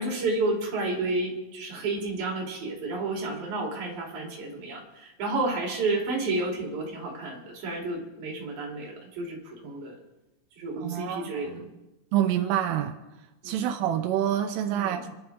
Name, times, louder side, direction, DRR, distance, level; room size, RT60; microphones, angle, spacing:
voice 1, 0.0-9.9 10.6-11.6 13.4-13.6 14.7-15.0, right 2 dB, 40° right, -2 dB, 4.3 m, -31 dB
voice 2, 10.8-11.7 12.1-13.0 13.4-15.2, right 10 dB, 85° right, 6 dB, 3.4 m, -27 dB
28.0 x 12.0 x 3.6 m, 1.0 s
omnidirectional pair, 5.6 m